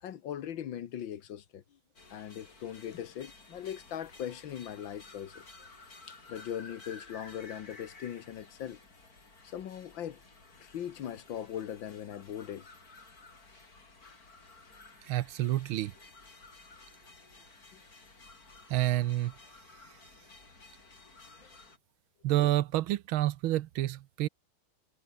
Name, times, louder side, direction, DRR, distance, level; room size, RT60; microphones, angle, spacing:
voice 1, 0.0-1.8 2.1-5.4 6.1-8.8 9.4-10.2 10.6-12.7 14.0-14.2 17.7-17.8 21.4-21.5, left 10 dB, 65° left, 1.8 m, -40 dB
sound 1, 2.0-21.8, left 3 dB, 45° left, 4.4 m, -54 dB
voice 2, 15.1-15.9 18.7-19.3 22.2-24.3, right 14 dB, 80° right, 1.6 m, -28 dB
omnidirectional pair, 2.3 m